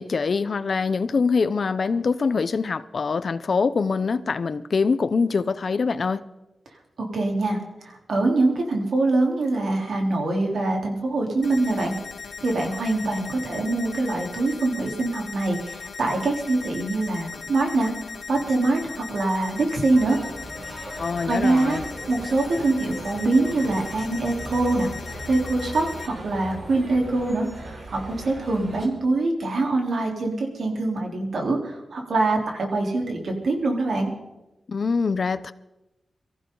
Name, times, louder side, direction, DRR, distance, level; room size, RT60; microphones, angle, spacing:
voice 1, 0.0-6.2 21.0-21.8 34.7-35.5, left 4 dB, 60° left, 0.7 m, -24 dB
voice 2, 7.0-11.9 12.4-17.9 18.3-20.2 20.7-20.9 21.3-21.8 22.1-24.9 25.3-34.1, right 2 dB, 75° right, 3.7 m, -24 dB
sound 1, 11.4-26.1, left 5 dB, 80° left, 1.7 m, -38 dB
sound 2, 19.9-28.9, right 1 dB, 50° right, 3.9 m, -38 dB
24.0 x 15.0 x 4.0 m
wide cardioid pair, 85°, 0 cm